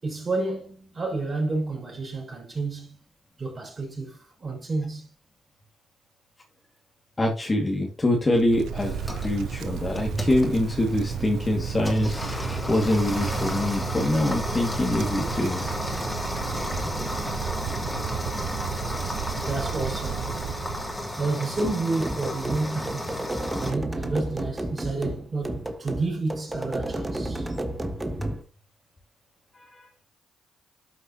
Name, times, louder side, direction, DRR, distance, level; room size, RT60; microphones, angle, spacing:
voice 1, 0.0-3.0 3.4-5.1 19.4-20.3 21.2-23.1 23.6-27.5, right 3 dB, 40° right, 5.8 m, -30 dB
voice 2, 7.2-15.8 16.8-16.9 28.2-28.3 29.5-29.9, left 1 dB, 30° left, 2.2 m, -25 dB
Wind, 8.3-21.1, right 8 dB, 75° right, 0.8 m, -33 dB
sound 1, 8.8-23.7, left 1 dB, 10° left, 3.3 m, -33 dB
sound 2, 21.6-28.4, right 1 dB, 20° right, 1.5 m, -32 dB
12.5 x 5.9 x 2.9 m
supercardioid pair, 50°, 0 cm